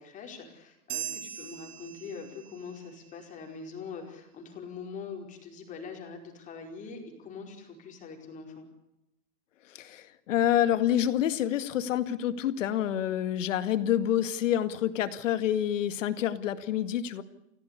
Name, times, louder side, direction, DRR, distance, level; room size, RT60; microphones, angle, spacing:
voice 1, 0.0-8.7, left 5 dB, 15° left, 3 dB, 4.9 m, -43 dB
sound 1, 0.9-2.8, right 11 dB, 35° right, 2.9 m, -39 dB
voice 2, 9.7-17.2, left 11 dB, 55° left, 11 dB, 2.1 m, -27 dB
29.5 x 17.0 x 8.4 m, 0.87 s
hypercardioid pair, 165°, 44 cm